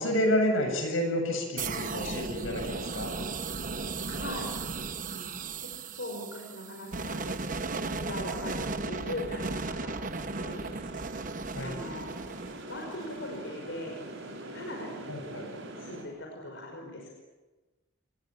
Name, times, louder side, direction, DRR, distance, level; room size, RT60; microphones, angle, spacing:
voice 1, 0.0-3.1 11.5-11.7 15.1-15.5, equal, 85° left, 4 dB, 7.9 m, -29 dB
sound 1, 1.6-13.4, right 3 dB, 40° right, 1.1 m, -36 dB
voice 2, 4.1-4.5 5.1-5.3 5.6-5.7 6.0-10.7 11.6-12.1 12.7-14.0 14.5-15.1 15.8-17.1, left 1 dB, 65° left, 0 dB, 5.5 m, -40 dB
sound 2, 8.4-16.0, right 1 dB, 80° right, 6.3 m, -44 dB
28.0 x 21.5 x 8.5 m, 1.2 s
head